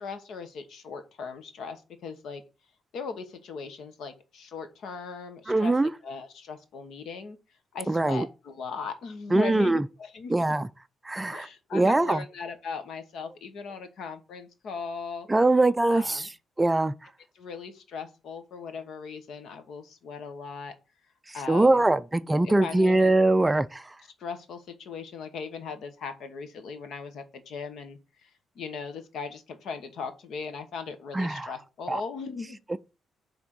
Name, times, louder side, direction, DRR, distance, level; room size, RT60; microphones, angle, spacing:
voice 1, 0.0-2.4 2.9-5.7 6.0-7.4 7.7-10.3 11.3-15.3 15.9-16.3 17.3-20.7 21.3-21.8 22.4-23.1 24.2-28.3 28.5-32.6, left 5 dB, 70° left, 1.2 m, -38 dB
voice 2, 5.5-5.9 7.9-8.3 9.3-9.8 10.3-10.7 11.0-12.2 15.3-16.3 16.6-16.9 21.3-23.9 31.1-31.5 31.9-32.0 32.7-32.8, right 2 dB, 15° right, 0.3 m, -23 dB
6.3 x 3.5 x 6.0 m
cardioid pair, 125°, 0 cm